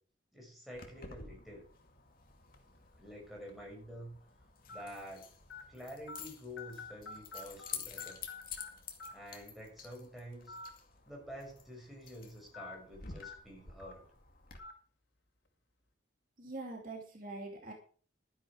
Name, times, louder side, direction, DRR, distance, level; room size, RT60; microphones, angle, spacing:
voice 1, 0.3-1.6 3.0-4.2 4.7-5.3 5.7-8.2 9.1-10.6 11.1-14.0, equal, ahead, -2 dB, 5.9 m, -48 dB
Keys jangling, 0.7-14.6, left 7 dB, 50° left, 2.3 m, -50 dB
sound 1, 2.5-2.8 3.5-3.6 4.7-4.8 5.5-5.6 6.1-6.2 6.6-7.7 8.0-8.7 9.0-9.1 10.4-10.7 11.1-11.2 12.5-12.7 13.2-13.3 13.8-13.9 14.6-14.7, left 4 dB, 80° left, 5.1 m, -46 dB
voice 2, 16.4-17.7, right 2 dB, 45° right, 1 dB, 2.6 m, -44 dB
13.0 x 10.0 x 4.8 m, 0.42 s
head